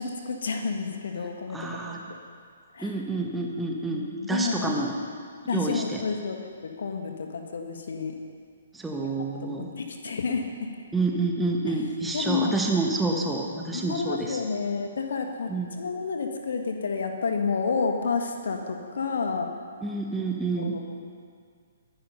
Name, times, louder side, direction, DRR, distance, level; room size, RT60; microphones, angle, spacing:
voice 1, 0.0-2.2 2.7-3.0 3.8-4.8 5.5-6.4 6.6-8.2 8.9-10.7 11.7-11.8 12.1-12.5 13.7-19.5 20.6-21.0, left 5 dB, 55° left, 4 dB, 1.8 m, -30 dB
voice 2, 1.5-2.0 2.8-4.9 5.5-6.0 8.7-9.7 10.9-14.4 15.5-15.7 19.8-20.8, right 3 dB, 5° right, 0 dB, 1.5 m, -28 dB
22.0 x 10.5 x 5.5 m, 2.1 s
figure-of-eight pair, 125°, 0 cm